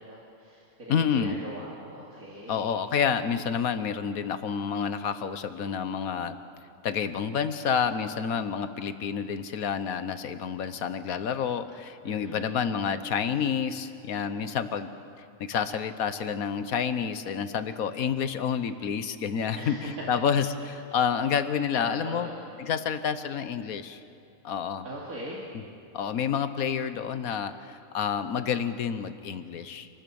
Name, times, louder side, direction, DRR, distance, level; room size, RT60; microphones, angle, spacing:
voice 1, 0.0-2.8 12.0-12.5 19.5-19.9 21.7-22.3 24.8-25.4, right 1 dB, 85° right, -4 dB, 3.1 m, -41 dB
voice 2, 0.9-1.4 2.5-6.4 6.8-14.9 15.4-22.3 22.6-24.0 24.4-24.9 25.5-25.6 25.9-29.9, left 7 dB, 85° left, 11 dB, 1.5 m, -29 dB
27.5 x 19.0 x 7.1 m, 2.6 s
omnidirectional pair, 1.5 m